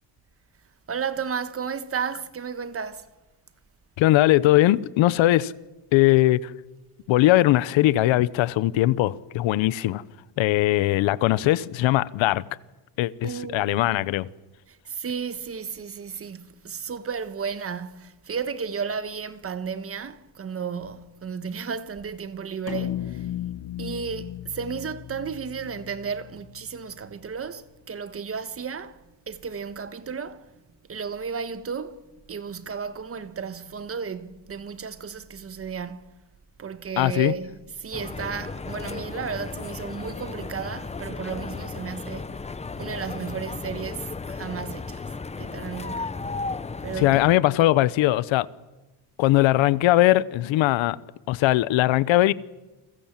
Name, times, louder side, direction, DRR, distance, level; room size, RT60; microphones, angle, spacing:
voice 1, 0.9-3.1 13.2-13.8 14.7-23.3 23.8-30.5 30.9-32.0 32.3-36.1 36.6-42.4 42.7-45.1 45.4-46.2 46.8-47.3, right 6 dB, 30° right, 1.4 m, -33 dB
voice 2, 4.0-5.5 5.9-6.5 7.1-10.0 10.4-12.4 13.0-14.3 37.0-37.3 47.0-48.5 49.2-51.0 51.3-52.3, left 16 dB, 85° left, 1.1 m, -20 dB
sound 1, 22.7-27.1, left 12 dB, 50° left, 0.9 m, -35 dB
sound 2, 37.9-47.4, left 4 dB, 15° left, 0.8 m, -35 dB
30.0 x 23.0 x 7.5 m
cardioid pair, 145°, 45 cm